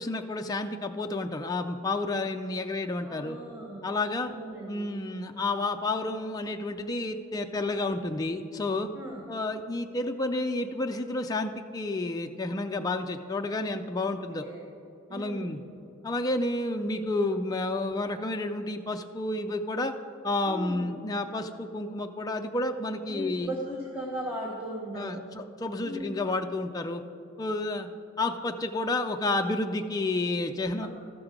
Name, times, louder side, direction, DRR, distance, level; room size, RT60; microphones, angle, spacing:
voice 1, 0.0-3.4 3.8-4.3 4.6-8.9 9.3-14.5 15.1-15.6 16.0-19.9 20.2-23.5 24.9-27.0 27.4-27.9 28.2-30.9, left 2 dB, 20° left, 5 dB, 0.3 m, -30 dB
voice 2, 3.0-3.9 4.2-4.9 8.9-9.3 14.4-14.7 15.1-15.6 20.5-20.8 23.1-25.4 25.8-26.1 30.8-30.9, right 1 dB, 10° right, -4 dB, 1.0 m, -37 dB
13.5 x 6.0 x 5.0 m, 2.7 s
head